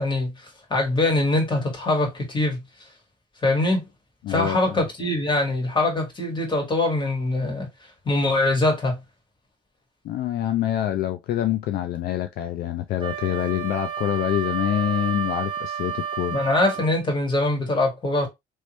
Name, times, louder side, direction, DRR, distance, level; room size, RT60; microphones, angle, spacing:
voice 1, 0.0-2.6 3.4-3.9 4.3-7.7 8.1-9.0 16.3-18.3, left 2 dB, 30° left, 2.0 m, -23 dB
voice 2, 4.2-4.7 10.0-16.4, left 12 dB, 65° left, 0.5 m, -26 dB
Wind instrument woodwind instrument, 13.0-17.0, right 8 dB, 30° right, 0.9 m, -31 dB
3.1 x 3.1 x 3.1 m
cardioid pair, 110°, 17 cm